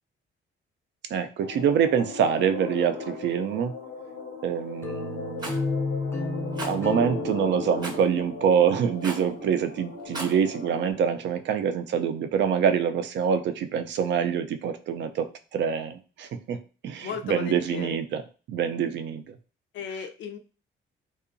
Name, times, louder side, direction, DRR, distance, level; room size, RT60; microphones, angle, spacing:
voice 1, 1.1-3.7 4.4-5.5 6.6-16.6 16.8-18.2 18.5-19.2, right 7 dB, 65° right, 8 dB, 0.4 m, -25 dB
sound 1, 1.4-10.9, left 4 dB, 90° left, 0.8 m, -38 dB
sound 2, 4.8-9.7, left 3 dB, 10° left, 0.5 m, -33 dB
Rattle, 5.4-5.6 6.6-6.7 7.8-8.0 9.0-9.3 10.0-10.4, right 2 dB, 20° right, 0.7 m, -35 dB
voice 2, 17.0-18.0 19.7-20.4, left 7 dB, 70° left, 6 dB, 0.4 m, -35 dB
2.7 x 2.3 x 2.5 m, 0.36 s
cardioid pair, 90°, 20 cm